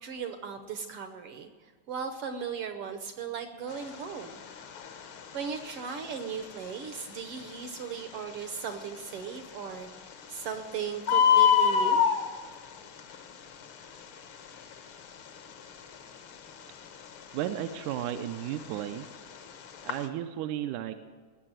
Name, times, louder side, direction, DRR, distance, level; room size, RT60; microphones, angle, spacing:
voice 1, 0.0-4.3 5.3-9.9 10.3-12.0, right 6 dB, 65° right, 7 dB, 1.5 m, -37 dB
Bird, 3.7-20.1, left 8 dB, 60° left, 1.4 m, -30 dB
voice 2, 17.3-19.1 19.8-21.0, right 11 dB, 85° right, 8 dB, 2.1 m, -34 dB
19.5 x 6.9 x 9.0 m, 1.5 s
omnidirectional pair, 3.5 m